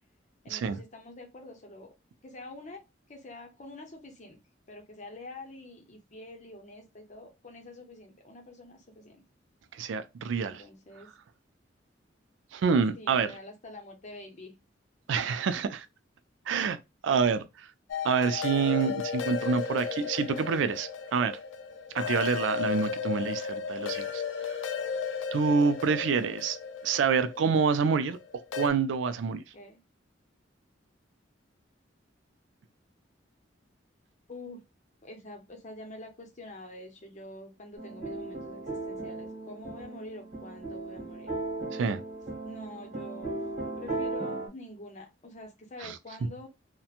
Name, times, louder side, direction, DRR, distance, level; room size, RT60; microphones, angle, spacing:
voice 1, 0.4-1.9 2.2-2.8 3.1-4.4 4.7-9.2 10.4-11.1 13.0-14.5 15.5-15.6 29.5-29.8 34.3-34.6 35.0-38.6 38.9-41.4 42.4-43.4 43.8-46.5, left 2 dB, 40° left, 0.7 m, -46 dB
voice 2, 9.7-10.6 12.5-13.3 15.1-15.8 16.5-16.8 17.0-17.4 18.0-21.4 21.9-24.6 25.3-26.6 26.8-28.2 28.5-29.4 41.7-42.0 45.8-46.0, right 5 dB, 80° right, 0.4 m, -27 dB
sound 1, 17.9-28.7, left 6 dB, 80° left, 0.4 m, -34 dB
sound 2, 37.8-44.5, right 2 dB, 45° right, 1.3 m, -36 dB
2.8 x 2.1 x 2.4 m
head